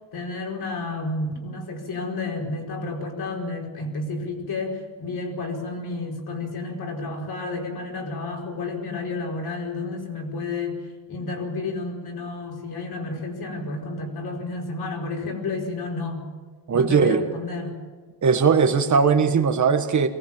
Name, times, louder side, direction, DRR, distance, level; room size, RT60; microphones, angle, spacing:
voice 1, 0.1-10.8 11.1-16.3 16.7-17.8, left 3 dB, 60° left, 1 dB, 5.0 m, -31 dB
voice 2, 16.7-17.2 18.2-20.1, right 5 dB, 40° right, 6 dB, 1.6 m, -19 dB
23.5 x 19.0 x 7.4 m, 1.4 s
wide cardioid pair, 175°, 44 cm